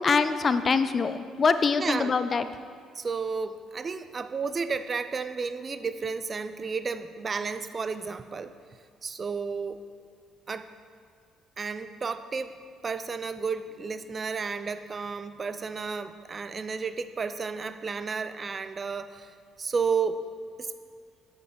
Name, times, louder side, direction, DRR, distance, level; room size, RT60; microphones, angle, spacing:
voice 1, 0.0-2.5, left 5 dB, 40° left, 11 dB, 0.4 m, -24 dB
voice 2, 1.8-2.1 3.0-8.5 9.0-9.8 10.5-10.7 11.6-12.5 12.8-20.2 20.6-20.7, right 5 dB, 40° right, 11 dB, 0.5 m, -32 dB
8.7 x 4.0 x 6.8 m, 2.2 s
supercardioid pair, 75°, 0 cm